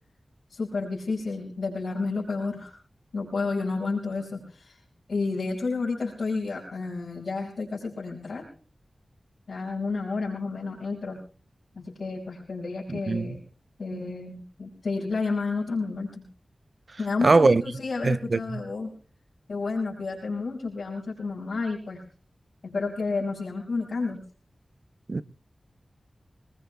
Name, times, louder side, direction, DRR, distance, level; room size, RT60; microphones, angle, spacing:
voice 1, 0.5-2.7 3.1-4.8 5.1-8.5 9.5-11.2 11.8-13.4 13.8-16.3 17.0-18.9 19.5-22.0 22.6-24.2, left 3 dB, 80° left, 5.7 m, -31 dB
voice 2, 12.9-13.4 13.9-14.1 17.2-17.6 18.0-18.6 25.1-25.2, right 3 dB, 60° right, 0.6 m, -22 dB
25.5 x 21.0 x 2.3 m
cardioid pair, 50°, 0 cm